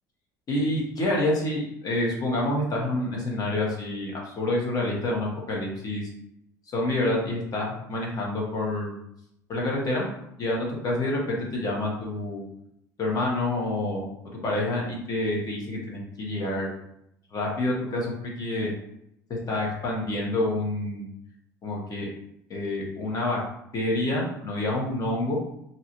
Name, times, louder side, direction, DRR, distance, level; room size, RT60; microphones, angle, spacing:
voice 1, 0.5-6.1 6.7-8.9 9.5-10.1 10.4-12.4 13.0-14.1 14.4-16.7 17.3-18.7 19.3-21.0 21.6-22.1 22.5-23.4 23.7-25.4, left 1 dB, 45° left, -2 dB, 1.2 m, -27 dB
2.8 x 2.4 x 2.9 m, 0.78 s
hypercardioid pair, 75°, 9 cm